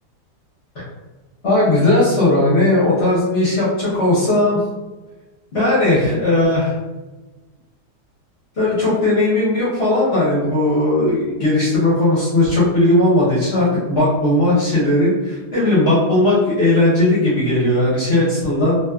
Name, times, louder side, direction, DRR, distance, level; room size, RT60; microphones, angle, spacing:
voice 1, 1.4-4.6 5.5-6.7 8.6-18.8, left 1 dB, 50° left, -9 dB, 0.9 m, -17 dB
2.7 x 2.2 x 2.3 m, 1.2 s
omnidirectional pair, 1.8 m